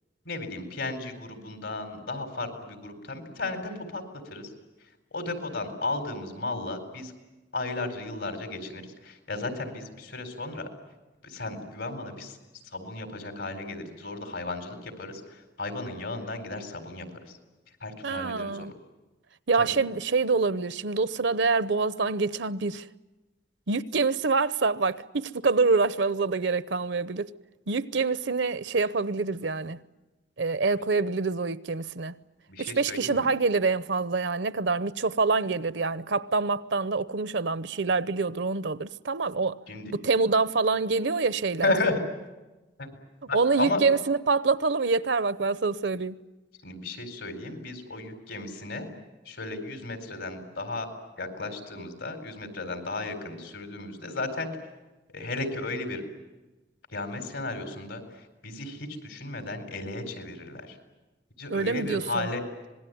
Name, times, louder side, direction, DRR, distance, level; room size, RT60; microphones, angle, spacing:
voice 1, 0.2-4.0 4.3-4.5 5.1-7.1 7.5-10.7 11.2-12.4 12.7-17.4 17.8-18.7 19.6-19.7 32.5-33.3 39.7-39.9 41.6-42.0 42.8-42.9 43.3-43.8 46.6-48.9 49.3-50.9 51.2-54.5 55.1-56.0 56.9-58.0 58.4-60.8 61.4-62.7, left 2 dB, 85° left, 4.5 m, -34 dB
voice 2, 18.0-18.7 19.5-22.8 23.7-27.3 27.7-29.8 30.4-32.2 32.6-39.6 39.9-41.7 43.3-46.2 61.5-62.3, right 4 dB, 75° right, 0.8 m, -26 dB
26.0 x 20.5 x 9.5 m
head